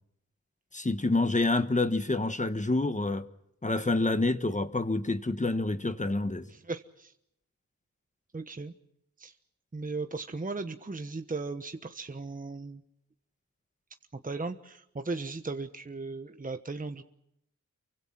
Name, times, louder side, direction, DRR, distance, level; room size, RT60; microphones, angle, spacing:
voice 1, 0.7-3.2 3.6-6.5, left 2 dB, 20° left, 1.4 m, -27 dB
voice 2, 6.5-7.1 8.3-8.7 9.2-9.3 9.7-12.8 14.1-17.0, right 3 dB, 25° right, 1.2 m, -37 dB
29.0 x 24.5 x 5.9 m
wide cardioid pair, 80°, 33 cm